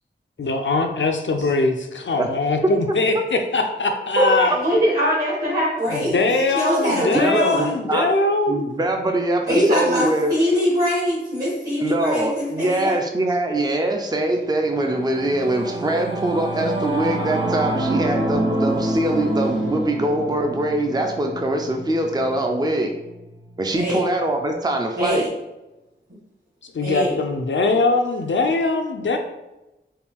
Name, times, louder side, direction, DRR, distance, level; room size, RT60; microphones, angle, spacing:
voice 1, 0.4-4.5 5.9-8.7 26.7-29.2, left 3 dB, 70° left, 5 dB, 0.5 m, -21 dB
voice 2, 4.2-6.1 6.5-7.7 9.5-13.0 23.7-24.0 25.0-25.3 26.8-27.1, equal, 50° right, -7 dB, 1.4 m, -22 dB
voice 3, 7.1-10.4 11.8-23.0 23.6-25.3, right 1 dB, 20° right, 3 dB, 0.5 m, -23 dB
Singing / Musical instrument, 14.4-24.1, right 1 dB, 75° right, 1.0 m, -27 dB
4.3 x 2.3 x 3.6 m, 1.0 s
wide cardioid pair, 55°, 20 cm